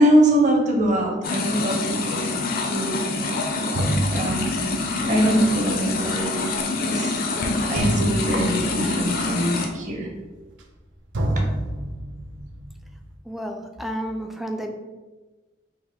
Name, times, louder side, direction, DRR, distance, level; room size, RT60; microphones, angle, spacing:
voice 1, 0.0-2.3 2.7-3.1 4.1-4.7 5.0-6.6 6.8-10.1 11.4-11.5, right 1 dB, 45° right, 1 dB, 0.8 m, -23 dB
sound 1, 1.2-9.7, left 3 dB, 55° left, 0.5 m, -26 dB
sound 2, 3.2-3.3 3.7-10.9 11.1-13.2, right 1 dB, 85° right, 0.6 m, -30 dB
voice 2, 13.2-14.7, equal, ahead, 3 dB, 0.3 m, -31 dB
3.8 x 2.5 x 4.4 m, 1.2 s
head